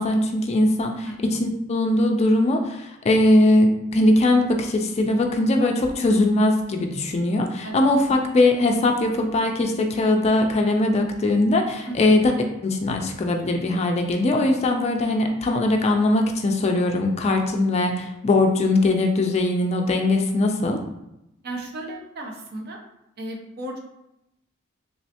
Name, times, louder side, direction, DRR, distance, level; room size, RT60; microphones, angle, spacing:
voice 1, 0.0-12.3 12.6-20.8, left 2 dB, 30° left, 3 dB, 0.4 m, -20 dB
voice 2, 21.4-22.8 23.2-23.8, right 1 dB, 50° right, 1 dB, 0.6 m, -34 dB
3.1 x 3.0 x 2.8 m, 0.86 s
head